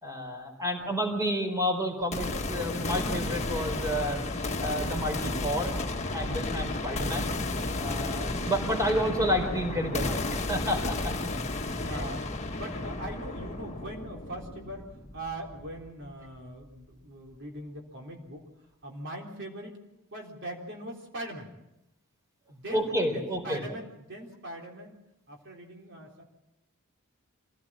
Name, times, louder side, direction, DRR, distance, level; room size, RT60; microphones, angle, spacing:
voice 1, 0.0-4.2 4.6-5.7 6.1-7.3 7.8-11.0 11.8-12.1 22.7-23.7, equal, 15° right, 4 dB, 4.2 m, -30 dB
sound 1, 2.1-16.1, left 2 dB, 30° left, 1.5 m, -33 dB
voice 2, 11.6-18.4 18.8-19.8 20.1-21.5 22.5-25.0 25.3-26.2, right 1 dB, 55° right, 0 dB, 3.8 m, -41 dB
26.0 x 17.0 x 7.5 m, 0.89 s
head